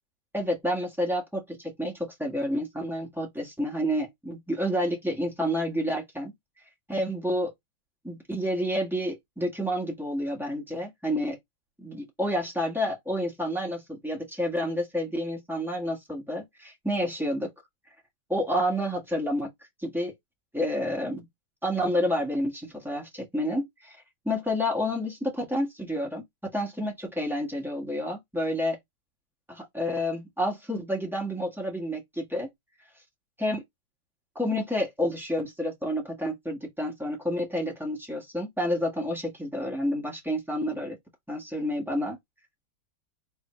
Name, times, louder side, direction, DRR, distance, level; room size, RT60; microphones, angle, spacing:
voice 1, 0.3-6.3 6.9-7.5 8.0-11.4 11.8-17.5 18.3-19.5 19.8-20.1 20.5-21.2 21.6-24.0 24.2-28.8 29.5-32.5 33.4-33.6 34.3-41.0 41.3-42.2, equal, ahead, 1.2 m, -29 dB
4.0 x 3.5 x 3.1 m
omnidirectional pair, 2.2 m